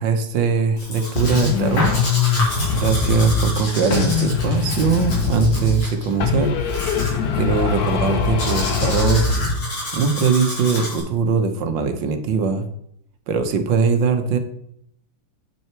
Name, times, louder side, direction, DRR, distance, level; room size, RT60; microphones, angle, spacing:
voice 1, 0.0-2.0 2.7-6.5 7.4-9.4 9.9-12.6 13.3-14.4, right 5 dB, 65° right, 8 dB, 1.5 m, -21 dB
Domestic sounds home sounds, 0.8-11.0, left 1 dB, 90° left, 4.3 m, -30 dB
sound 1, 1.2-3.6 3.9-5.9 6.2-9.6, left 5 dB, 55° left, 1.2 m, -22 dB
8.9 x 6.1 x 4.5 m, 0.71 s
omnidirectional pair, 2.3 m